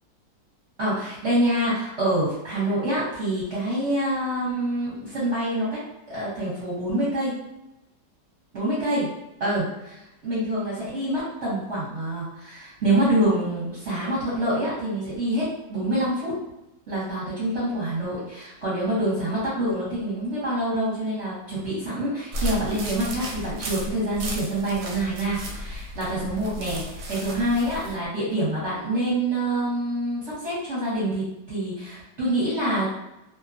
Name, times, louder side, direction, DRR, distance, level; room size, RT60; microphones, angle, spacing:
voice 1, 0.8-5.8 6.1-7.4 8.5-9.1 9.4-16.3 16.9-32.9, right 1 dB, 50° right, -10 dB, 1.0 m, -26 dB
sound 1, 22.3-27.9, equal, 75° right, 1.1 m, -34 dB
2.8 x 2.1 x 2.4 m, 0.92 s
omnidirectional pair, 1.9 m